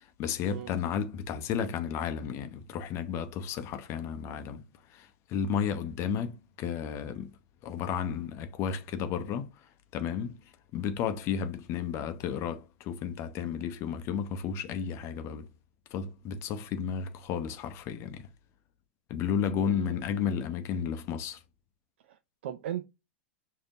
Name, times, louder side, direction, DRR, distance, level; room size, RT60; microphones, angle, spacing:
voice 1, 0.0-4.6 4.9-7.3 7.6-9.5 9.9-10.4 10.7-15.5 15.9-18.3 19.1-21.4, left 7 dB, 40° left, 0.6 m, -33 dB
voice 2, 19.6-20.0 22.1-22.9, right 11 dB, 65° right, 0.4 m, -38 dB
5.0 x 2.7 x 2.5 m
hypercardioid pair, 100°, 7 cm